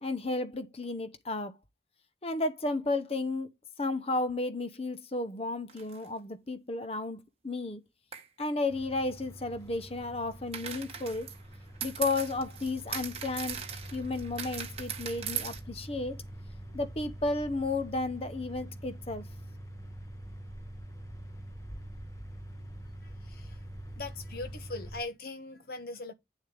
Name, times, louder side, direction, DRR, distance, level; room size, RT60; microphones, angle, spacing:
voice 1, 0.0-1.5 2.2-3.5 3.8-7.8 8.4-11.3 11.8-13.6 13.9-16.2 16.7-19.3, left 2 dB, 30° left, 0.8 m, -33 dB
sound 1, 5.7-6.1 8.1-8.3 10.5-15.6, right 8 dB, 30° right, 1.5 m, -39 dB
sound 2, 8.7-25.0, right 1 dB, 15° left, 1.2 m, -45 dB
voice 2, 23.3-23.6 24.0-26.1, left 3 dB, 50° left, 1.2 m, -40 dB
9.3 x 6.9 x 3.4 m
head